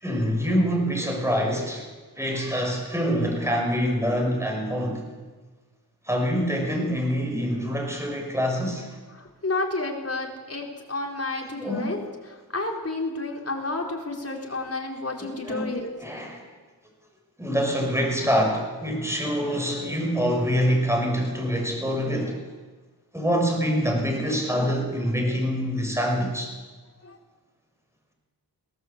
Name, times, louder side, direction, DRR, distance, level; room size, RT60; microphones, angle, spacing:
voice 1, 0.0-1.8 2.1-5.1 6.0-8.9 11.6-11.9 15.2-15.7 16.0-16.4 17.4-22.4 23.1-26.5, equal, 5° right, 1 dB, 6.5 m, -25 dB
voice 2, 9.1-12.0 12.3-15.9 27.0-27.2, left 2 dB, 40° left, 0 dB, 4.6 m, -30 dB
21.5 x 17.5 x 8.4 m, 1.3 s
wide cardioid pair, 85°, 39 cm